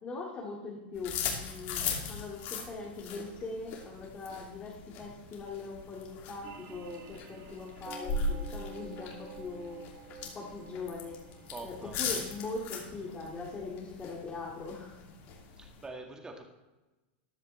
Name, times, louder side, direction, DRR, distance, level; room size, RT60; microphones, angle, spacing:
voice 1, 0.0-9.9 10.3-11.2 11.6-15.0, left 3 dB, 20° left, -2 dB, 2.1 m, -41 dB
sound 1, 1.0-15.9, left 4 dB, 45° left, 2.7 m, -39 dB
sound 2, 6.4-13.3, right 4 dB, 45° right, 1.5 m, -50 dB
voice 2, 11.5-12.0 15.6-16.4, right 3 dB, 15° right, 2 dB, 1.8 m, -44 dB
14.0 x 11.0 x 3.3 m, 1.1 s
supercardioid pair, 140°, 6 cm